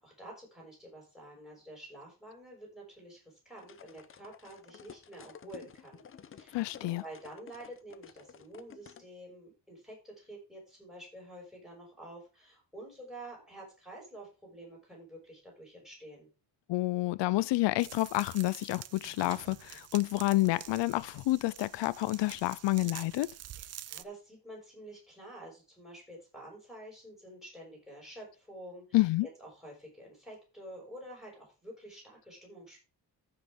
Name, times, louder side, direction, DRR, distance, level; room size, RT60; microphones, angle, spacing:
voice 1, 0.0-16.3 23.6-29.0 29.4-32.8, right 1 dB, ahead, 5.9 m, -49 dB
sound 1, 3.6-9.1, left 7 dB, 30° left, 0.7 m, -53 dB
voice 2, 6.5-7.0 16.7-23.3 28.9-29.3, left 18 dB, 90° left, 0.6 m, -29 dB
sound 2, 17.8-24.0, right 11 dB, 40° right, 0.4 m, -47 dB
15.0 x 5.9 x 3.6 m
cardioid pair, 170°, 42 cm